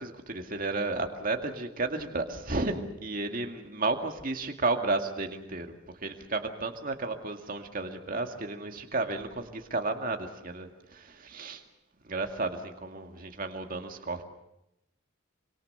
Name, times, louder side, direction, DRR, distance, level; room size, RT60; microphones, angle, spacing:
voice 1, 0.0-5.7 6.0-11.6 12.0-14.2, right 3 dB, 40° right, 5 dB, 2.2 m, -33 dB
26.0 x 25.5 x 6.9 m, 0.84 s
head